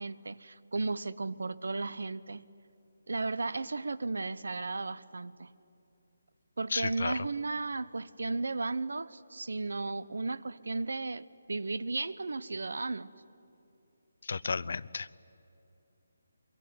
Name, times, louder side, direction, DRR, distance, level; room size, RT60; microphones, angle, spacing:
voice 1, 0.0-2.5 3.1-5.5 6.6-13.1, right 3 dB, 90° right, 18 dB, 0.9 m, -35 dB
voice 2, 6.7-7.1 14.2-15.2, left 4 dB, 50° left, 18 dB, 0.5 m, -33 dB
23.0 x 23.0 x 9.6 m, 2.8 s
hypercardioid pair, 180°, 0 cm